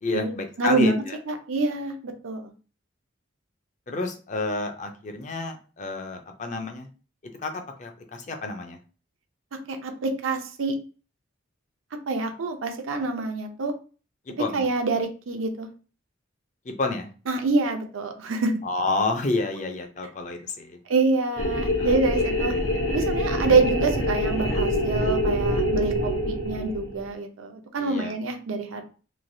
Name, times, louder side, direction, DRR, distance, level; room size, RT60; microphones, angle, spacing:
voice 1, 0.0-1.2 3.9-6.9 7.2-8.8 14.3-14.6 16.6-17.1 18.6-20.8 21.8-22.0 23.4-23.6 27.8-28.1, left 3 dB, 35° left, 5 dB, 0.4 m, -30 dB
voice 2, 0.6-2.5 9.7-10.7 12.1-13.7 14.5-15.7 17.3-18.5 20.9-22.5 22.9-28.8, right 3 dB, 85° right, 5 dB, 0.6 m, -26 dB
sound 1, 21.4-27.1, equal, 90° left, 0.7 m, -25 dB
3.1 x 2.3 x 2.6 m, 0.36 s
head